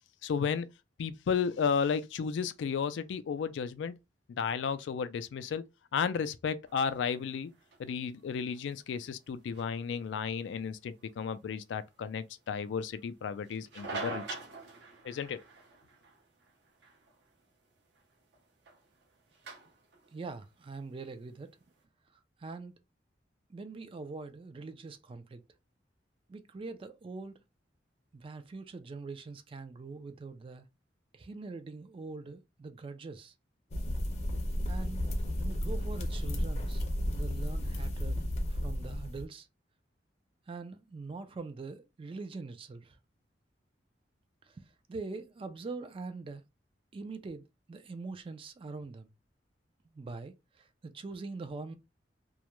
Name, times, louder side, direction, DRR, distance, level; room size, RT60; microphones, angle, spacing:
voice 1, 0.2-0.7 1.0-3.9 4.3-5.6 5.9-7.5 7.8-14.2 15.0-15.4, left 6 dB, 80° left, 0.3 m, -33 dB
sound 1, 6.7-21.8, right 3 dB, 65° right, 0.7 m, -48 dB
voice 2, 20.1-21.5 22.1-22.8 23.5-25.4 26.3-27.4 28.1-30.7 31.1-33.3 34.7-35.0 35.4-36.8 37.1-38.2 38.5-39.5 40.5-43.0 44.4-46.4 46.9-49.1 49.9-51.7, right 3 dB, 30° right, 0.3 m, -43 dB
sound 2, 33.7-39.2, equal, 40° left, 0.6 m, -33 dB
2.3 x 2.1 x 2.9 m
head